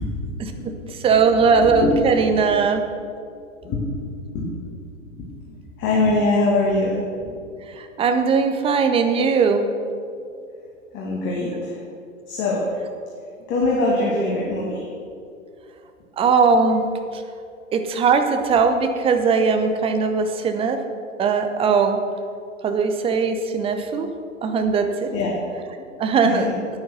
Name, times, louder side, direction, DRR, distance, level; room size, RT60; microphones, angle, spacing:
voice 1, 0.0-2.0 3.6-4.0 4.3-4.5 5.1-7.3 10.9-11.8 12.3-12.6 13.5-14.9 25.1-25.4 26.2-26.6, left 2 dB, 30° left, -4 dB, 2.1 m, -24 dB
voice 2, 1.0-2.8 7.8-9.7 16.2-16.8 17.1-17.2 17.7-20.8 21.2-22.0 22.6-24.1 24.4-25.1 26.0-26.5, right 5 dB, 15° right, 6 dB, 0.7 m, -19 dB
9.4 x 9.4 x 5.9 m, 2.4 s
figure-of-eight pair, 100°, 39 cm